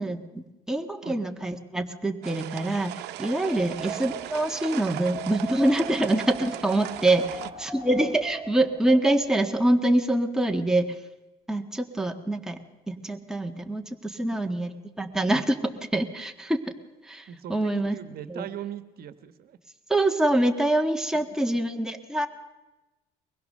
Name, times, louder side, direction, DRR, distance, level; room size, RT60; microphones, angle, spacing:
voice 1, 0.0-2.9 3.2-7.2 7.6-10.9 11.5-12.6 12.9-14.7 15.0-16.7 17.0-17.9 18.3-18.5 19.9-22.3, right 1 dB, 5° right, 4 dB, 1.5 m, -25 dB
sound 1, 2.2-7.5, right 15 dB, 85° right, 0.8 m, -38 dB
Wind, 3.3-9.3, right 4 dB, 30° right, 1.9 m, -40 dB
voice 2, 3.5-3.9 7.2-7.5 14.1-14.5 17.3-19.6 21.1-21.6, right 10 dB, 65° right, 11 dB, 1.3 m, -40 dB
22.5 x 20.5 x 6.6 m, 1.1 s
cardioid pair, 110°, 17 cm